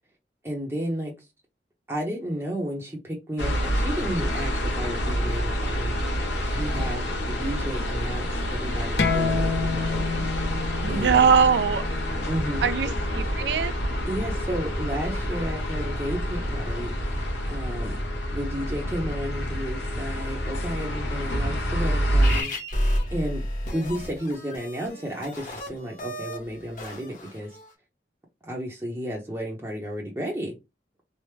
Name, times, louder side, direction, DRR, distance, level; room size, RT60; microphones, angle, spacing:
voice 1, 0.4-1.1 1.9-6.0 6.4-10.6 10.9-11.3 12.3-12.7 14.1-18.0 18.3-22.5 22.8-23.4 23.7-27.6 28.4-30.5, equal, 15° right, 0.6 m, -33 dB
sound 1, 3.4-22.4, equal, 90° left, 1.1 m, -27 dB
sound 2, 9.0-14.2, left 5 dB, 70° left, 0.5 m, -30 dB
voice 2, 10.8-11.9 12.6-13.7, right 6 dB, 75° right, 0.3 m, -21 dB
sound 3, 22.2-27.7, equal, 45° left, 1.0 m, -32 dB
3.2 x 2.0 x 3.1 m
head